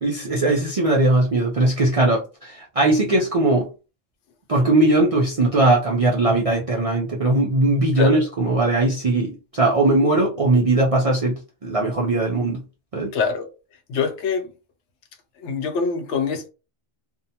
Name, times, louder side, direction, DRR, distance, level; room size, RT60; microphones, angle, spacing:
voice 1, 0.0-3.7 4.5-12.6 12.9-13.1, right 2 dB, 50° right, 0.4 m, -19 dB
voice 2, 13.1-13.5 13.9-14.5 15.4-16.5, left 5 dB, 80° left, 0.9 m, -24 dB
2.6 x 2.1 x 2.7 m
omnidirectional pair, 1.2 m